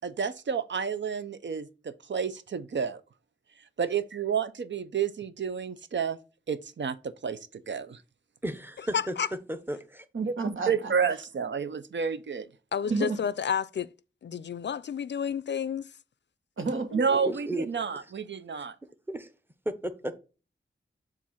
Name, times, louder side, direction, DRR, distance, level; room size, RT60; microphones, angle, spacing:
voice 1, 0.0-3.0 3.8-6.2 6.5-8.0 10.7-12.5 16.9-18.7, right 6 dB, 65° right, 0.6 m, -30 dB
voice 2, 8.4-10.1 17.1-17.7 19.1-19.3 19.7-20.2, right 1 dB, 10° right, 0.7 m, -34 dB
voice 3, 8.9-9.3 12.7-13.9 14.2-15.9, left 7 dB, 65° left, 0.4 m, -30 dB
voice 4, 10.1-10.9 12.8-13.2 16.6-17.0, right 3 dB, 85° right, 1.1 m, -30 dB
7.4 x 2.5 x 5.6 m
wide cardioid pair, 100°, 20 cm